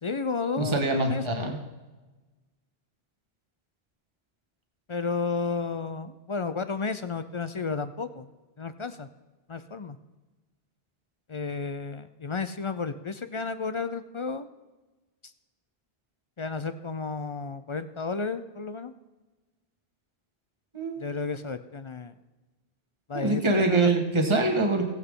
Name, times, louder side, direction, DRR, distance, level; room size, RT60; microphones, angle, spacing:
voice 1, 0.0-1.6 4.9-8.3 8.6-9.1 9.5-10.0 11.3-14.5 16.4-18.9 21.0-22.1 23.1-23.9, left 4 dB, 40° left, 11 dB, 0.4 m, -32 dB
voice 2, 0.6-1.6 20.7-21.0 23.1-24.8, right 2 dB, 25° right, 3 dB, 1.6 m, -24 dB
19.0 x 8.0 x 3.8 m, 1.2 s
omnidirectional pair, 1.1 m